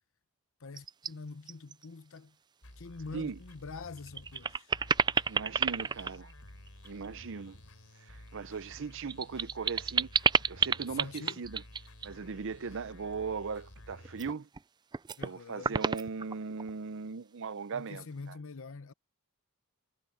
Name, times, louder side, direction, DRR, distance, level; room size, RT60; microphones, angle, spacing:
voice 1, 0.6-2.4 2.8-4.7 10.9-11.4 15.2-15.8 17.7-18.9, left 4 dB, 65° left, 0.8 m, -45 dB
sound 1, 0.8-1.1 1.5-1.8 2.2-2.3 3.5-3.6 4.0-7.1 8.7-12.1 14.0-14.6 14.9-15.3 15.6-16.7, right 5 dB, 20° right, 0.4 m, -30 dB
sound 2, 2.6-14.3, left 1 dB, 80° left, 3.8 m, -52 dB
voice 2, 5.3-6.3 6.8-7.6 8.1-10.1 10.5-11.6 12.0-14.5 15.2-18.4, right 5 dB, 60° right, 0.6 m, -38 dB
head